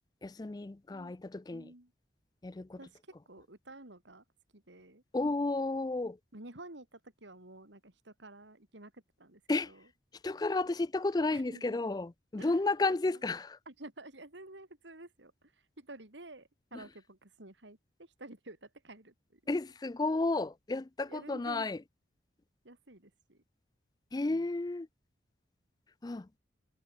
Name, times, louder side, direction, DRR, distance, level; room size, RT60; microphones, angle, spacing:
voice 1, 0.2-1.7 2.4-2.8 5.1-6.2 9.5-9.7 10.2-13.6 16.7-16.8 19.5-21.8 24.1-24.9 26.0-26.3, left 2 dB, 20° left, 0.4 m, -32 dB
voice 2, 1.5-1.9 2.8-4.2 4.5-5.0 6.3-9.9 11.3-11.8 12.4-12.7 13.0-13.2 13.6-15.5 15.8-19.4 21.1-21.7 22.6-23.4 24.3-24.5, right 2 dB, 75° right, 3.6 m, -51 dB
head